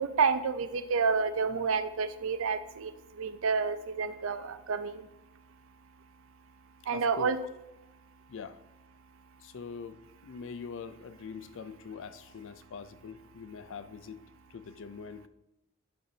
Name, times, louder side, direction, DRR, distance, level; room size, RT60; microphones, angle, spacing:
voice 1, 0.0-5.1 6.9-7.4, right 5 dB, 65° right, 12 dB, 0.5 m, -29 dB
voice 2, 6.9-7.4 8.3-8.6 9.4-14.2 14.5-15.3, left 5 dB, 65° left, 13 dB, 0.4 m, -43 dB
10.5 x 5.9 x 2.7 m, 0.93 s
head